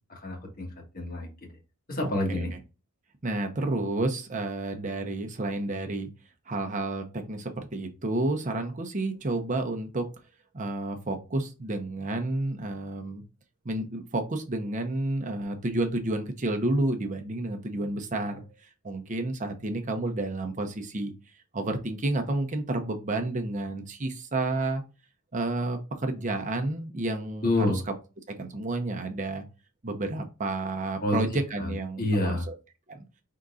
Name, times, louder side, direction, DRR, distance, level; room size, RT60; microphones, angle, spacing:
voice 1, 0.1-1.5 1.9-2.5 27.4-27.8 31.0-31.3 31.6-32.5, left 1 dB, 40° left, 1 dB, 1.4 m, -28 dB
voice 2, 2.0-2.6 3.2-6.1 6.5-10.0 10.5-13.2 13.6-21.1 21.5-24.8 25.3-27.8 28.4-29.4 29.8-32.5 32.9-33.0, right 2 dB, 35° right, 5 dB, 0.7 m, -30 dB
5.3 x 3.7 x 2.4 m, 0.30 s
head